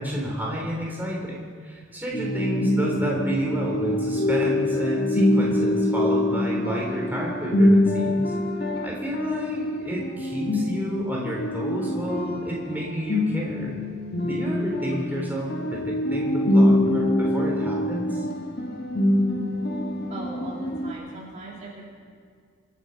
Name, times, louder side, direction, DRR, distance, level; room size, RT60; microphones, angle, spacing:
voice 1, 0.0-8.3 8.8-13.7 14.2-15.5 15.8-18.2, equal, 10° right, -3 dB, 3.4 m, -30 dB
sound 1, 2.1-20.9, left 1 dB, 50° left, 1.7 m, -24 dB
voice 2, 20.1-21.9, right 1 dB, 35° right, -4 dB, 2.8 m, -39 dB
26.0 x 9.2 x 5.7 m, 2.1 s
head